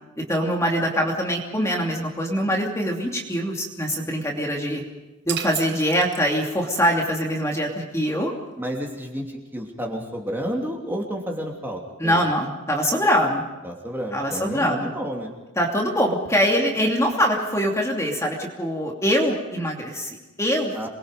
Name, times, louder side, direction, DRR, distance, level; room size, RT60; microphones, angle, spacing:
voice 1, 0.2-4.8 5.3-8.3 12.0-13.4 14.1-14.9 15.6-20.9, equal, 15° left, 0 dB, 2.8 m, -23 dB
sound 1, 5.3-6.8, right 11 dB, 55° right, 1.1 m, -34 dB
voice 2, 8.6-12.2 13.6-15.3 20.7-20.9, equal, 10° right, 0 dB, 3.0 m, -31 dB
28.0 x 21.5 x 5.3 m, 1.1 s
head